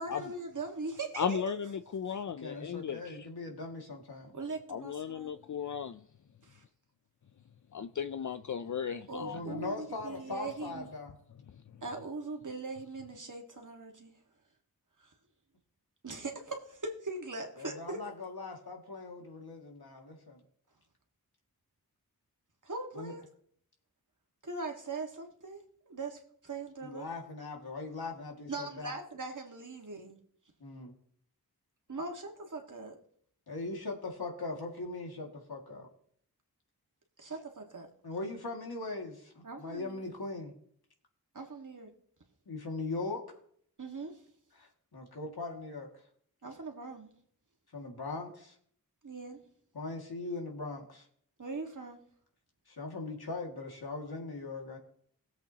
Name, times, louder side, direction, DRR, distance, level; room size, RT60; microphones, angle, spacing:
voice 1, 0.0-1.6 4.3-5.3 6.4-6.6 9.1-10.9 11.8-14.1 15.0-15.1 16.0-18.0 22.6-23.2 24.4-27.1 28.5-30.2 31.9-33.0 37.2-37.9 39.4-40.1 41.3-41.9 43.8-44.2 46.4-47.1 49.0-49.4 51.4-52.0, right 3 dB, 55° right, 1.8 m, -41 dB
voice 2, 1.2-3.2 4.7-6.0 7.7-9.4, left 7 dB, 50° left, 0.5 m, -35 dB
voice 3, 2.4-4.4 9.2-11.1 17.6-20.4 22.9-23.1 26.8-28.9 30.6-30.9 33.5-35.9 38.0-40.5 42.5-43.2 44.6-45.9 47.7-48.5 49.7-51.1 52.7-54.8, left 3 dB, 75° left, 2.2 m, -40 dB
18.0 x 7.9 x 2.9 m
wide cardioid pair, 50°, 38 cm